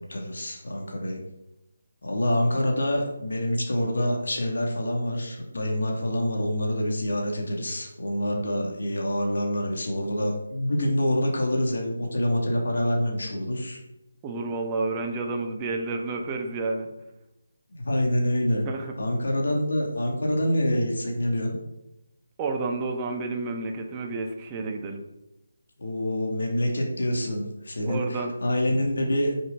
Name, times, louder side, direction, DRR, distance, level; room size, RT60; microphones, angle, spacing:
voice 1, 0.1-1.2 2.0-13.8 17.8-18.6 19.0-21.6 25.8-29.3, left 1 dB, 55° left, 1 dB, 2.4 m, -26 dB
voice 2, 14.2-16.9 18.6-18.9 22.4-25.0 27.8-28.3, right 3 dB, 15° right, 2 dB, 1.2 m, -30 dB
9.7 x 7.1 x 4.0 m, 0.90 s
figure-of-eight pair, 150°, 0 cm